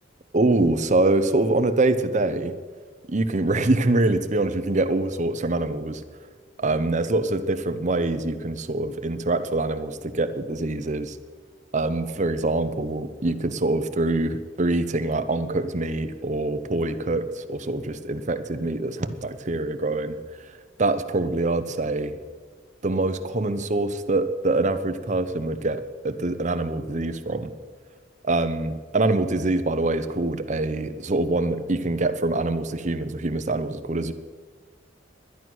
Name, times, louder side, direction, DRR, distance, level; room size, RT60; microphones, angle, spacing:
voice 1, 0.3-2.5 3.1-6.0 6.6-11.2 11.7-22.2 22.8-27.5 28.2-34.1, right 2 dB, 40° right, 10 dB, 0.7 m, -24 dB
11.0 x 11.0 x 6.1 m, 1.5 s
head